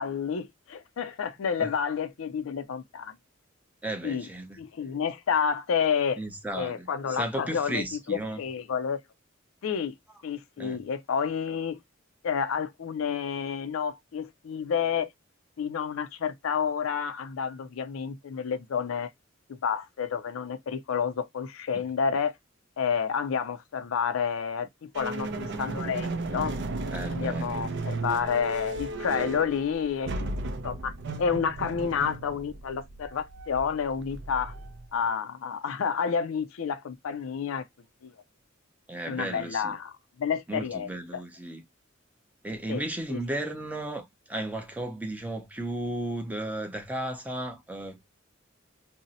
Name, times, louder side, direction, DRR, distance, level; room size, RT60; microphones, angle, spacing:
voice 1, 0.0-3.2 4.0-4.3 4.6-6.2 6.5-9.0 9.6-9.9 10.2-11.8 12.2-15.1 15.6-19.1 19.5-22.3 22.8-26.5 27.1-30.3 30.6-30.9 31.2-34.5 34.9-37.6 38.0-38.1 39.1-39.9 40.2-41.2 42.7-42.8 43.1-43.2, left 6 dB, 80° left, 0.4 m, -30 dB
voice 2, 3.8-4.6 6.2-8.4 10.6-10.8 26.9-27.5 29.1-29.4 38.9-39.7 40.5-41.6 42.4-48.0, right 1 dB, 10° right, 0.6 m, -34 dB
sound 1, 24.9-35.0, right 2 dB, 60° right, 0.5 m, -35 dB
2.6 x 2.0 x 3.9 m
head